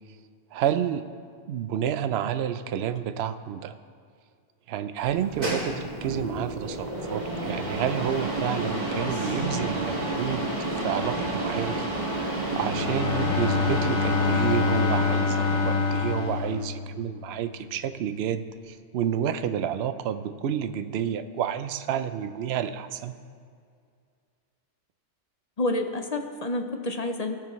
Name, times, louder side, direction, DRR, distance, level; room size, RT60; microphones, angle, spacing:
voice 1, 0.5-1.0 1.5-3.7 4.7-11.9 12.2-23.1, right 9 dB, 70° right, 10 dB, 0.8 m, -30 dB
sound 1, 5.0-16.6, right 1 dB, 35° right, 1.8 m, -30 dB
Bowed string instrument, 12.6-17.4, left 5 dB, 75° left, 1.0 m, -26 dB
voice 2, 25.6-27.4, left 2 dB, 45° left, 5 dB, 0.6 m, -28 dB
18.0 x 6.8 x 3.1 m, 2.1 s
omnidirectional pair, 1.2 m